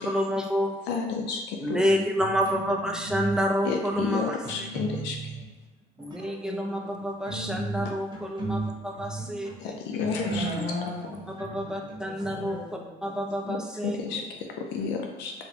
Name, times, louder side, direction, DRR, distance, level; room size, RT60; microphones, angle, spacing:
voice 1, 0.0-0.8 1.6-4.7 6.0-9.5 10.6-10.7 11.4-12.6 13.0-14.0, equal, 5° right, 1 dB, 0.4 m, -28 dB
voice 2, 0.9-1.8 3.6-5.3 7.8-7.9 9.6-10.6 13.5-13.6 13.8-15.3, left 5 dB, 90° left, 2 dB, 0.5 m, -31 dB
sound 1, 1.8-3.4 3.6-5.4 6.0-6.4 7.0-12.5, right 2 dB, 25° right, 0.9 m, -36 dB
voice 3, 6.2-6.9 10.2-11.6 12.0-13.1 14.1-14.2 14.8-14.9, left 2 dB, 85° right, -5 dB, 1.2 m, -38 dB
4.2 x 2.1 x 2.7 m, 1.2 s
cardioid pair, 110°, 17 cm